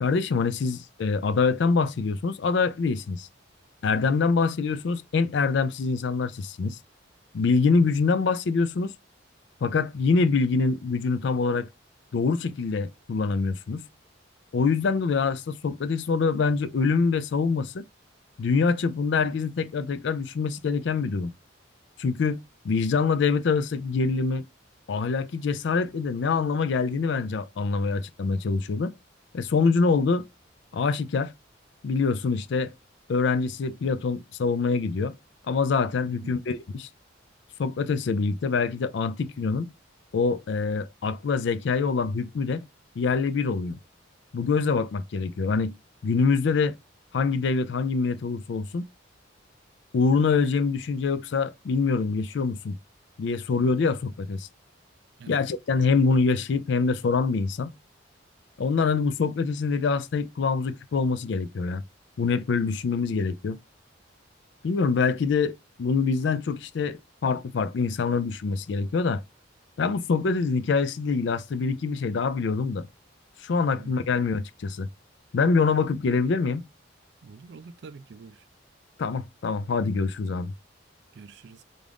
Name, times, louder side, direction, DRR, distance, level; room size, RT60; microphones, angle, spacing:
voice 1, 0.0-3.3 3.8-6.8 7.3-8.9 9.6-11.7 12.1-13.9 14.5-17.8 18.4-21.3 22.0-22.4 22.6-24.5 24.9-28.9 29.3-30.2 30.7-31.3 31.8-32.7 33.1-35.2 35.5-36.9 37.6-39.7 40.1-42.6 43.0-43.8 44.3-45.7 46.0-46.8 47.1-48.9 49.9-52.8 53.2-54.5 55.3-57.7 58.6-61.8 62.2-63.6 64.6-69.2 69.8-72.9 73.4-74.9 75.3-76.7 79.0-80.5, left 4 dB, 60° left, 0.4 m, -25 dB
voice 2, 36.0-36.4 55.2-55.4 73.7-73.9 77.2-78.4 81.1-81.6, right 4 dB, 60° right, 0.4 m, -45 dB
3.6 x 2.5 x 3.4 m
head